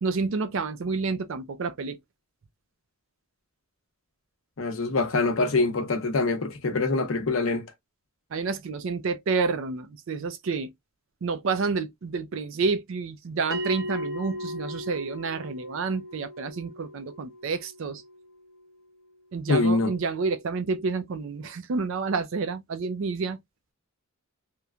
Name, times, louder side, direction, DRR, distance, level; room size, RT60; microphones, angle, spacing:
voice 1, 0.0-2.0 8.3-10.7 11.2-18.0 19.3-23.4, right 4 dB, 60° right, 0.4 m, -29 dB
voice 2, 4.6-7.7 19.5-19.9, left 3 dB, 70° left, 0.7 m, -24 dB
Bell, 13.5-18.6, left 1 dB, 40° left, 1.0 m, -37 dB
3.0 x 2.1 x 2.3 m
head